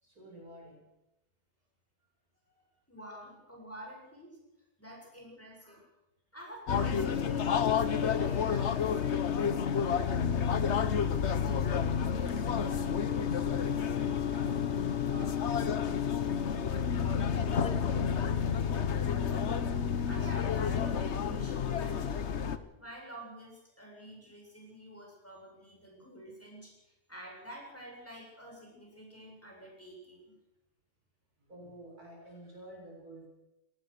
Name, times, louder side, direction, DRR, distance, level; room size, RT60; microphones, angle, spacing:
voice 1, 0.0-0.8 2.5-2.6 5.6-5.8 12.0-16.6 17.2-20.1 31.5-33.3, right 1 dB, 65° right, -1 dB, 7.7 m, -50 dB
voice 2, 2.9-4.4 4.8-5.8 6.3-9.5 20.0-22.2 22.8-30.4, right 1 dB, 10° left, -2 dB, 7.7 m, -48 dB
sound 1, 6.7-22.6, left 7 dB, 50° left, 1.2 m, -30 dB
23.0 x 18.5 x 6.7 m, 0.93 s
omnidirectional pair, 1.7 m